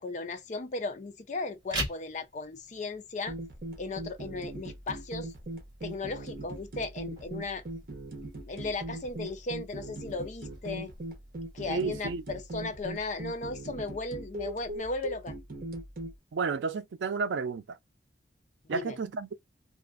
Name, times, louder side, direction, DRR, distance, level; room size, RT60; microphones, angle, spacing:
voice 1, 0.0-3.4 3.8-5.3 5.8-7.6 8.4-10.9 11.5-15.4 18.7-19.0, left 3 dB, 40° left, 0.4 m, -36 dB
sound 1, 1.5-12.5, right 1 dB, 25° right, 1.5 m, -45 dB
sound 2, 3.3-16.1, right 2 dB, 55° right, 0.8 m, -40 dB
voice 2, 11.7-12.2 16.3-17.8 18.7-19.3, right 5 dB, 85° right, 0.4 m, -32 dB
2.5 x 2.4 x 2.4 m
head